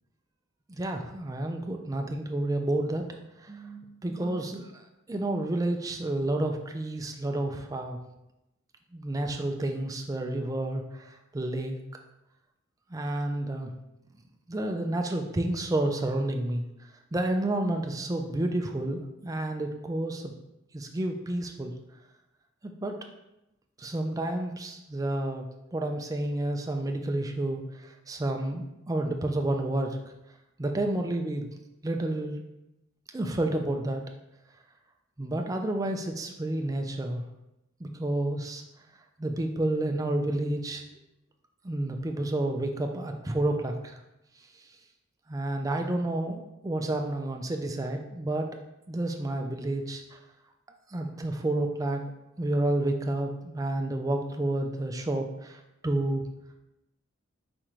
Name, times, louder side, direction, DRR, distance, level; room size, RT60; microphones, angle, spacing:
voice 1, 0.7-3.0 3.4-4.7 5.1-8.0 8.9-11.8 12.9-13.7 14.5-16.6 17.1-20.3 20.7-21.7 22.6-23.0 23.8-25.4 25.7-30.0 30.6-31.5 31.8-32.4 33.1-34.0 35.2-37.2 37.8-38.6 39.2-40.8 41.6-44.0 45.3-48.5 48.9-50.2 50.9-52.0 52.4-56.3, right 1 dB, 15° right, 4 dB, 0.3 m, -30 dB
4.3 x 3.7 x 3.0 m, 0.92 s
head